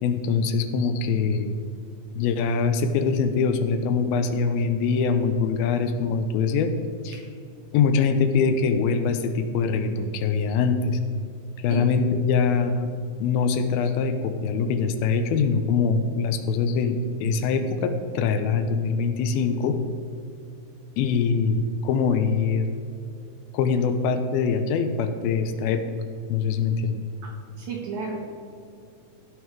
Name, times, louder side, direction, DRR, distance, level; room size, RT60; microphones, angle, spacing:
voice 1, 0.0-1.6 2.1-6.7 7.0-7.1 7.7-11.0 11.6-12.9 13.2-19.8 21.0-22.7 23.5-25.8 26.3-27.0, left 5 dB, 85° left, 8 dB, 2.6 m, -23 dB
voice 2, 27.2-28.2, right 6 dB, 70° right, 1 dB, 1.9 m, -33 dB
16.0 x 5.6 x 4.7 m, 2.5 s
omnidirectional pair, 4.3 m